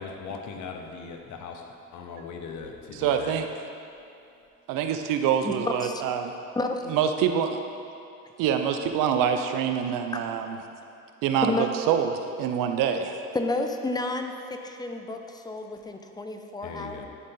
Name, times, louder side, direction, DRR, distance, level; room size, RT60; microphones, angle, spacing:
voice 1, 0.0-1.6 1.9-3.3 16.6-17.1, left 5 dB, 65° left, 4 dB, 0.9 m, -39 dB
voice 2, 2.9-3.5 4.7-6.3 6.9-7.6 8.4-10.6 11.2-13.2, right 8 dB, 80° right, 6 dB, 0.6 m, -25 dB
voice 3, 13.3-14.3 14.6-17.1, left 2 dB, 10° left, 5 dB, 0.5 m, -30 dB
10.5 x 4.0 x 3.8 m, 2.6 s
cardioid pair, 95°, 32 cm